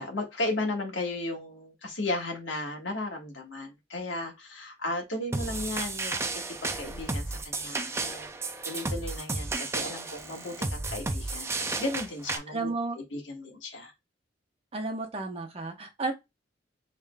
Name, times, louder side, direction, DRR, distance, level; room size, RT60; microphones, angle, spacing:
voice 1, 0.0-8.3 8.6-13.9, left 2 dB, 90° left, 1.5 m, -35 dB
sound 1, 5.3-12.4, right 3 dB, 15° right, 0.4 m, -33 dB
voice 2, 12.5-13.0 14.7-16.1, right 3 dB, 35° right, 1.1 m, -32 dB
4.9 x 3.5 x 2.3 m
head